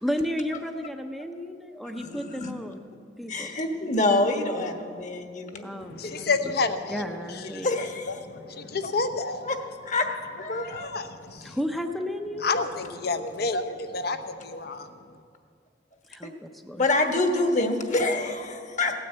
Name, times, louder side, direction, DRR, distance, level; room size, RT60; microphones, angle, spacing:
voice 1, 0.0-2.9 3.2-3.5 5.6-6.5 6.9-7.7 11.4-12.6 16.1-16.9, equal, ahead, 5 dB, 0.6 m, -33 dB
voice 2, 1.9-2.5 3.3-5.7 6.0-6.2 7.6-8.1 9.4-9.6 9.8-10.1 10.4-10.9 16.8-18.9, left 2 dB, 45° left, 5 dB, 1.3 m, -26 dB
voice 3, 5.8-7.7 8.1-9.5 10.5-11.6 12.4-14.9, left 3 dB, 60° left, 9 dB, 0.9 m, -30 dB
16.5 x 9.6 x 8.0 m, 2.3 s
head